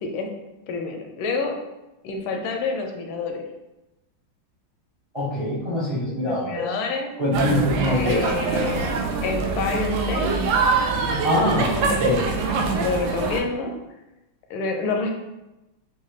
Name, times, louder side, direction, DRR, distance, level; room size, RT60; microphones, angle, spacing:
voice 1, 0.7-1.6 2.0-3.4 6.2-7.1 7.9-8.8 9.2-10.4 11.4-12.2 12.8-13.7 14.5-15.1, left 4 dB, 80° left, 3 dB, 1.4 m, -28 dB
voice 2, 5.1-6.7 7.2-8.2 11.2-12.2, left 1 dB, 40° right, -8 dB, 0.4 m, -23 dB
sound 1, 7.3-13.4, right 4 dB, 75° right, 1.2 m, -24 dB
5.3 x 2.2 x 3.2 m, 0.98 s
omnidirectional pair, 2.2 m